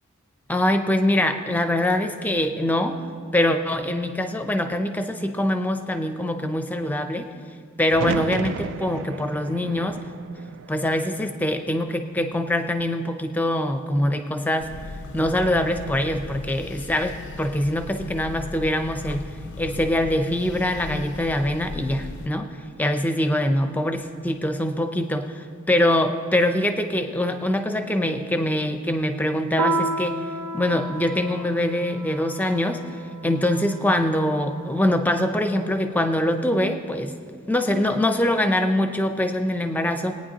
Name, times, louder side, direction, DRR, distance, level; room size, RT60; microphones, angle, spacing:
voice 1, 0.5-3.0 3.3-7.3 7.8-10.0 10.7-14.7 15.1-19.3 19.6-22.5 22.8-30.2 30.5-37.1 37.5-40.1, left 1 dB, 10° left, 7 dB, 0.5 m, -23 dB
sound 1, 7.9-11.9 12.3-13.1 14.9-15.4, right 6 dB, 55° right, 0.3 m, -34 dB
sound 2, 14.6-22.3, left 3 dB, 55° left, 0.5 m, -37 dB
Piano, 29.6-34.5, right 2 dB, 80° right, 0.8 m, -31 dB
20.5 x 9.3 x 2.8 m, 2.3 s
head